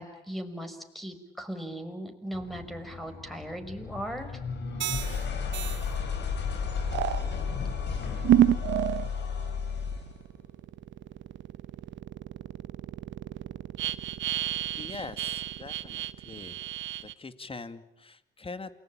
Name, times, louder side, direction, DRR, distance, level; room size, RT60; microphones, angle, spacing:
voice 1, 0.0-4.3, equal, ahead, 6 dB, 5.6 m, -38 dB
sound 1, 2.3-10.2, left 5 dB, 65° left, 5.3 m, -33 dB
sound 2, 4.8-5.2 5.5-5.8 6.9-7.2 8.2-9.1 9.6-17.1, right 12 dB, 70° right, 1.0 m, -29 dB
voice 2, 14.8-16.6 17.0-18.7, left 3 dB, 30° left, 11 dB, 2.2 m, -42 dB
28.5 x 21.0 x 8.9 m, 0.85 s
supercardioid pair, 60°, 20 cm